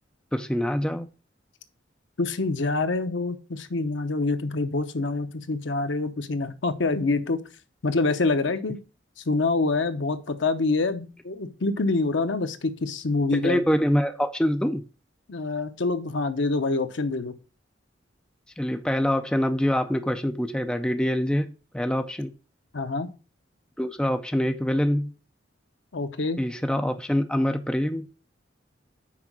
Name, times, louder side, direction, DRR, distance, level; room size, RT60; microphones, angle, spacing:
voice 1, 0.3-1.1 13.4-14.8 18.6-22.3 23.8-25.1 26.4-28.1, equal, 5° left, 0.4 m, -25 dB
voice 2, 2.2-7.4 7.8-8.8 9.3-13.6 15.3-17.3 22.7-23.1 25.9-26.4, left 3 dB, 70° left, 0.7 m, -26 dB
5.9 x 4.4 x 6.0 m
head